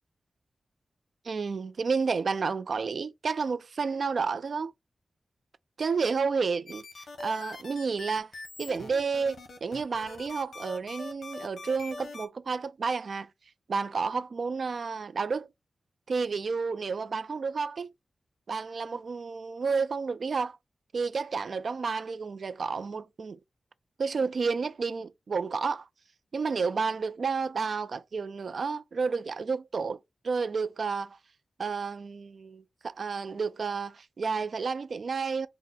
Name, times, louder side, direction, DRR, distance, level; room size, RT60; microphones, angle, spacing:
voice 1, 1.2-4.7 5.8-6.8 7.2-8.3 8.6-13.3 13.7-15.5 16.1-17.9 18.5-20.6 20.9-23.4 24.0-25.9 26.3-30.0 30.2-31.2 31.6-35.5, right 5 dB, 60° right, 0.3 m, -31 dB
sound 1, 6.7-12.3, left 3 dB, 75° left, 0.9 m, -43 dB
4.1 x 2.1 x 3.6 m
wide cardioid pair, 115°, 0 cm